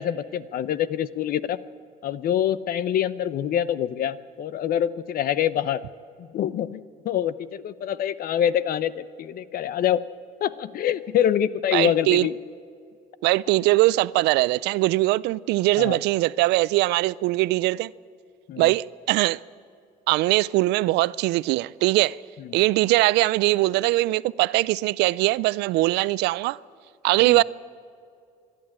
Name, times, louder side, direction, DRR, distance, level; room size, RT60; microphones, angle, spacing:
voice 1, 0.0-1.6 2.0-5.8 6.2-10.0 10.4-12.3 15.8-16.0 18.5-18.7 22.4-22.5 27.2-27.4, left 10 dB, 60° left, 0.7 m, -25 dB
voice 2, 11.7-12.3 13.2-17.9 18.6-19.4 20.1-22.2 22.5-26.6 27.0-27.4, right 19 dB, 90° right, 0.4 m, -21 dB
26.0 x 11.5 x 8.8 m
cardioid pair, 110°, 17 cm